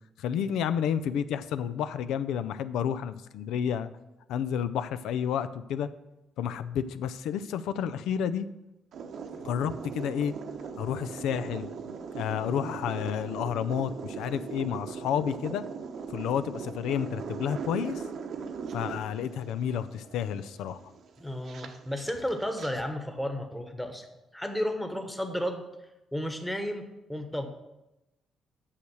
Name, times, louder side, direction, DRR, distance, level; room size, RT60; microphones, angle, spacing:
voice 1, 0.2-3.9 4.3-5.9 6.4-8.5 9.4-10.3 10.8-11.7 12.1-15.6 16.1-18.0 18.7-20.8, left 8 dB, 90° left, 12 dB, 0.5 m, -30 dB
sound 1, 8.9-22.7, right 5 dB, 65° right, 0.9 m, -39 dB
voice 2, 21.2-24.1 24.3-25.6 26.1-27.5, equal, 5° left, 4 dB, 1.2 m, -33 dB
8.6 x 6.5 x 6.2 m, 0.95 s
cardioid pair, 90°, 0 cm